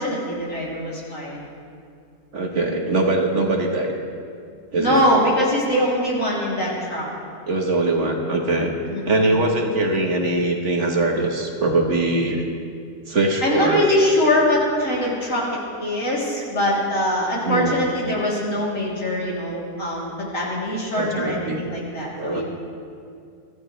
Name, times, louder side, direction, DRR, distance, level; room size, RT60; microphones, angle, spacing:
voice 1, 0.0-1.4 4.8-7.1 8.9-9.2 13.4-22.4, left 1 dB, 55° left, -5 dB, 3.6 m, -22 dB
voice 2, 2.3-3.9 4.7-5.0 7.5-8.7 9.0-12.4 13.1-13.9 16.4-16.5 17.4-17.8 21.0-21.6 22.2-22.4, right 2 dB, 50° right, 1 dB, 1.5 m, -22 dB
23.5 x 14.5 x 3.3 m, 2.4 s
omnidirectional pair, 1.6 m